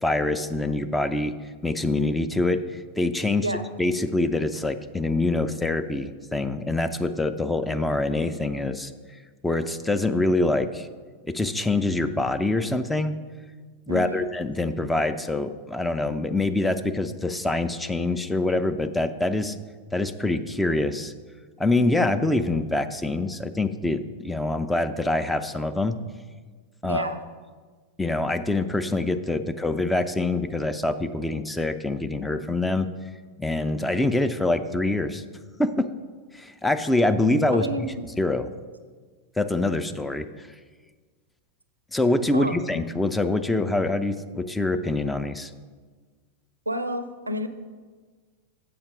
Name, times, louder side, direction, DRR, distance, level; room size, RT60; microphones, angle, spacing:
voice 1, 0.0-1.3 1.6-3.5 3.8-8.9 9.4-10.9 11.2-13.2 13.9-19.6 19.9-21.1 21.6-25.9 26.8-27.0 28.0-32.9 33.4-35.2 35.6-35.9 36.3-37.7 38.2-38.5 39.4-40.5 41.9-45.5, left 2 dB, 5° left, 9 dB, 0.4 m, -25 dB
voice 2, 13.9-14.3 26.8-27.2 37.5-38.1 42.3-42.6 46.7-47.5, right 1 dB, 80° right, 11 dB, 0.5 m, -29 dB
7.1 x 5.7 x 5.1 m, 1.5 s
figure-of-eight pair, 90°, 0 cm